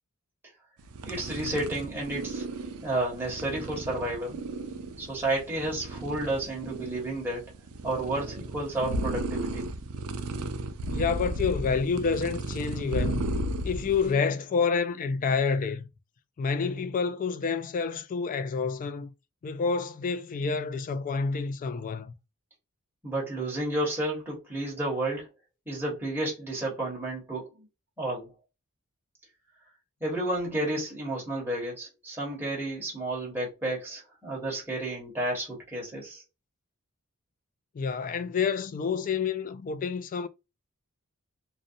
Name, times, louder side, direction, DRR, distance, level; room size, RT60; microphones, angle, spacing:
sound 1, 0.8-14.2, right 1 dB, 75° right, 0.4 m, -34 dB
voice 1, 1.0-2.4 2.8-4.4 5.0-7.5 7.8-9.7 23.0-25.3 25.7-27.6 28.0-28.3 30.0-36.2, right 1 dB, 10° right, 1.1 m, -31 dB
voice 2, 10.9-13.2 13.6-15.9 16.4-19.1 19.4-22.1 37.7-40.3, left 5 dB, 40° left, 0.3 m, -28 dB
2.5 x 2.1 x 2.6 m
head